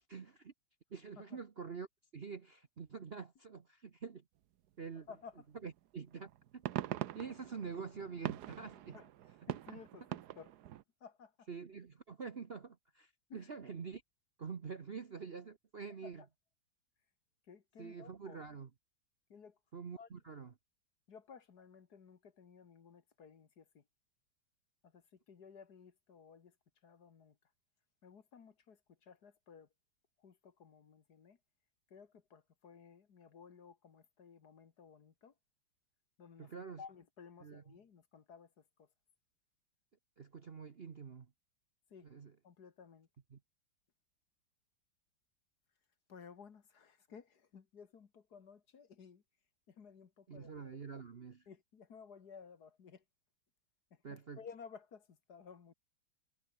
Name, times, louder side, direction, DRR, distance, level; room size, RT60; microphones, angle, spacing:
voice 1, 0.1-0.5 0.9-1.9 2.1-4.2 4.8-5.1 5.6-6.6 7.1-9.0 11.5-14.0 14.4-16.2 17.8-18.7 19.7-20.5 36.4-36.8 37.4-37.6 40.2-41.3 42.0-42.3 43.3-43.4 50.3-51.4 54.0-54.4, right 5 dB, 40° right, 0.9 m, -46 dB
voice 2, 5.0-5.5 8.9-9.1 9.5-10.6 11.0-11.5 13.3-13.5 16.0-16.3 17.5-18.4 19.3-19.6 20.0-20.1 21.1-23.8 24.8-26.6 26.8-27.4 28.0-29.7 30.2-31.4 31.9-35.3 36.2-36.5 36.8-38.9 41.9-42.1 42.4-43.1 46.1-49.2 49.7-50.8 51.5-53.0 53.9-55.7, left 6 dB, 55° left, 2.1 m, -56 dB
sound 1, 5.6-5.7 6.2-10.8, right 12 dB, 60° right, 1.2 m, -43 dB
omnidirectional pair, 2.2 m